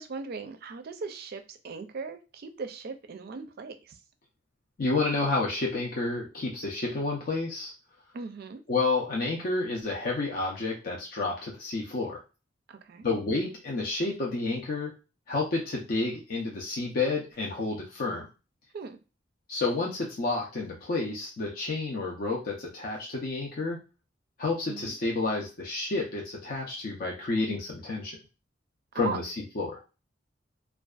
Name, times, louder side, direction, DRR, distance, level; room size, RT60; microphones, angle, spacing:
voice 1, 0.0-3.9 8.1-8.6 12.7-13.1 18.7-19.0 24.7-24.9 28.9-29.2, right 4 dB, 55° right, 7 dB, 0.4 m, -38 dB
voice 2, 4.8-7.7 8.7-12.2 13.0-14.9 15.3-18.2 19.5-23.8 24.4-28.2 28.9-29.8, left 3 dB, 50° left, -2 dB, 0.5 m, -30 dB
2.5 x 2.2 x 2.3 m, 0.31 s
head